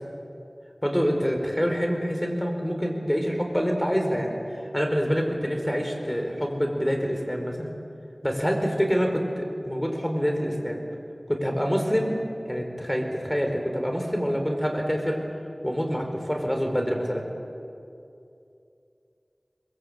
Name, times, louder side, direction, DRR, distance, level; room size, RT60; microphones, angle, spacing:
voice 1, 0.8-4.4 4.7-7.7 8.2-10.8 11.3-12.1 12.4-15.2 15.6-17.2, equal, 10° left, 2 dB, 4.5 m, -26 dB
22.5 x 22.0 x 8.7 m, 2.6 s
wide cardioid pair, 50°, 0 cm